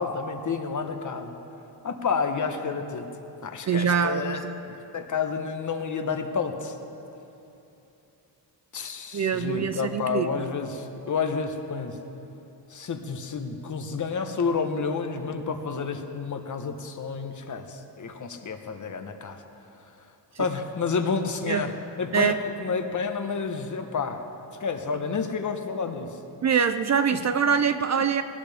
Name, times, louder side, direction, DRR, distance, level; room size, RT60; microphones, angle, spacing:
voice 1, 0.0-1.4 1.8-3.1 3.4-4.4 4.9-6.8 8.7-12.0 12.7-19.4 20.4-24.2 24.6-26.1 27.1-27.2, left 5 dB, 45° left, 6 dB, 1.2 m, -30 dB
voice 2, 3.7-4.6 9.1-10.5 20.4-20.5 21.5-21.8 22.1-22.4 26.4-28.2, right 7 dB, 40° right, 10 dB, 0.5 m, -24 dB
20.5 x 18.0 x 3.5 m, 2.9 s
cardioid pair, 120°, 43 cm